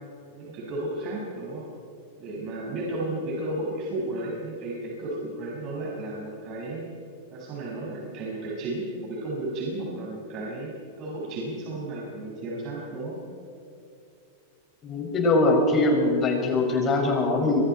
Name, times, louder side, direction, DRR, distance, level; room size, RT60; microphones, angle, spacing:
voice 1, 0.3-1.7 2.2-6.9 7.3-13.2, right 2 dB, 45° right, -4 dB, 6.2 m, -33 dB
voice 2, 14.8-17.6, left 2 dB, 30° left, 0 dB, 6.8 m, -22 dB
25.0 x 24.0 x 4.6 m, 2.6 s
hypercardioid pair, 115°, 0 cm